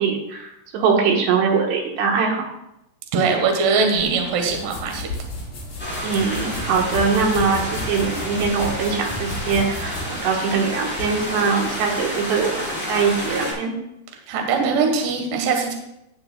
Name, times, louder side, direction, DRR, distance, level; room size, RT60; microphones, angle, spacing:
voice 1, 0.0-2.5 6.0-13.7, right 5 dB, 85° right, 1 dB, 3.4 m, -22 dB
voice 2, 3.1-5.1 14.3-15.7, right 4 dB, 65° right, 2 dB, 2.7 m, -21 dB
sound 1, 4.0-11.1, left 2 dB, 50° left, 3.5 m, -33 dB
sound 2, 5.8-13.5, equal, 5° left, 3.1 m, -30 dB
17.5 x 6.6 x 2.2 m, 0.86 s
omnidirectional pair, 4.8 m